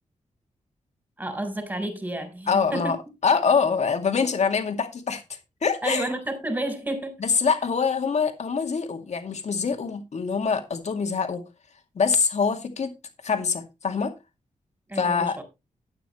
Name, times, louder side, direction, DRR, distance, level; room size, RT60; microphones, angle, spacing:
voice 1, 1.2-3.0 5.8-7.2 14.9-15.4, right 1 dB, 15° right, 4.1 m, -31 dB
voice 2, 2.5-3.0 3.2-6.1 7.2-11.4 11.9-12.9 13.2-14.1 14.9-15.4, left 5 dB, 60° left, 2.2 m, -24 dB
12.5 x 9.1 x 3.1 m
wide cardioid pair, 100°, 13 cm